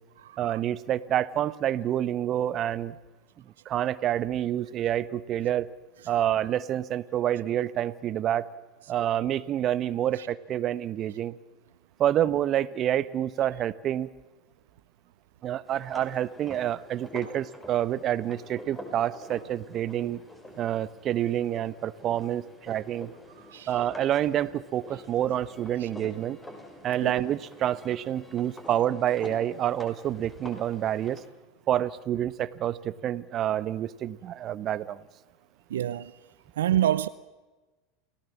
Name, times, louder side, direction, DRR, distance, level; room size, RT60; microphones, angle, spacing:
voice 1, 0.4-2.9 3.6-5.7 6.1-8.5 8.9-11.3 12.0-14.1 15.4-20.2 20.6-23.1 23.7-26.4 26.8-31.2 31.7-35.0, right 11 dB, 40° right, 1.1 m, -28 dB
sound 1, 15.6-31.3, left 1 dB, 15° left, 6.4 m, -47 dB
voice 2, 35.7-36.1 36.6-37.1, right 11 dB, 75° right, 0.7 m, -26 dB
29.0 x 18.0 x 7.3 m
hypercardioid pair, 85°, 0 cm